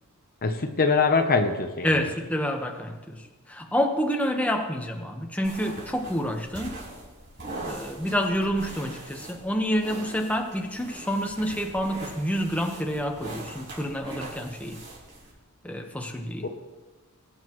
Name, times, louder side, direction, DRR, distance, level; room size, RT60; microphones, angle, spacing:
voice 1, 0.4-2.0 16.4-16.5, left 4 dB, 45° left, 5 dB, 0.8 m, -23 dB
voice 2, 1.8-3.2 3.5-6.8 7.6-14.8 15.6-16.5, equal, 5° left, 2 dB, 1.2 m, -28 dB
sound 1, 5.4-15.3, right 2 dB, 55° right, 5.2 m, -42 dB
22.0 x 9.7 x 3.1 m, 1.2 s
head